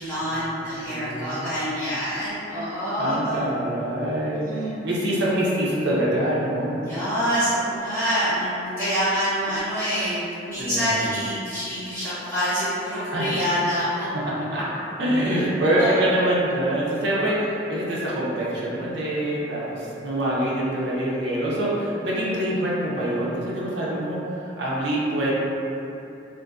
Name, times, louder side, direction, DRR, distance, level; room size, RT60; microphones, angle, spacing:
voice 1, 0.0-3.2 4.4-4.7 6.8-14.1 15.8-16.0 17.1-17.5, equal, 15° left, -16 dB, 1.1 m, -26 dB
voice 2, 0.8-1.5 3.0-6.8 10.6-11.0 13.1-13.3 14.5-14.7 15.0-17.4 17.7-25.3, right 1 dB, 60° right, -6 dB, 0.5 m, -25 dB
2.5 x 2.5 x 2.3 m, 2.8 s
head